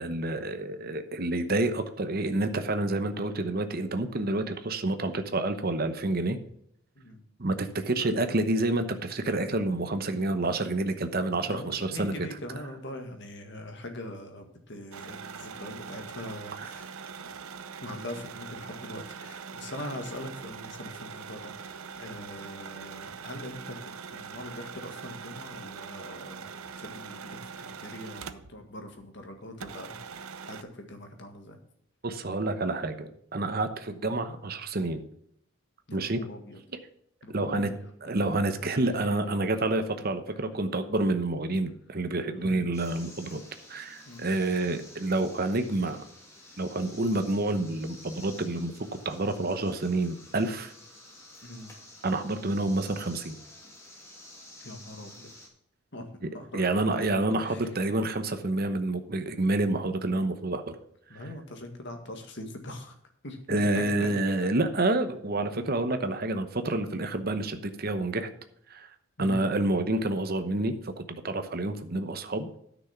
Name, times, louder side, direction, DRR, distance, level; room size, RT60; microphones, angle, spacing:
voice 1, 0.0-6.4 7.4-12.1 16.6-16.7 32.0-35.0 35.9-36.2 37.3-37.7 38.0-43.4 43.7-46.0 46.6-48.7 49.0-50.7 52.0-53.3 56.2-60.8 61.1-61.2 63.5-68.3 68.7-68.9 69.2-72.5, right 2 dB, 45° right, 9 dB, 0.9 m, -28 dB
voice 2, 11.4-17.0 17.8-23.8 24.1-26.5 26.8-31.6 35.9-36.6 37.2-37.8 39.0-39.1 40.3-40.4 42.4-42.7 44.1-44.3 51.4-51.7 54.6-55.3 55.9-57.0 57.4-57.7 61.1-62.9 63.2-63.4 63.7-64.1 64.4-64.5 69.2-69.5, left 1 dB, 55° left, 5 dB, 1.8 m, -42 dB
sound 1, 14.9-28.7 29.0-29.1 29.6-30.6, right 6 dB, 90° right, 0.7 m, -42 dB
sound 2, 42.7-55.5, left 1 dB, 15° left, 2.5 m, -51 dB
10.0 x 6.2 x 5.9 m, 0.70 s
head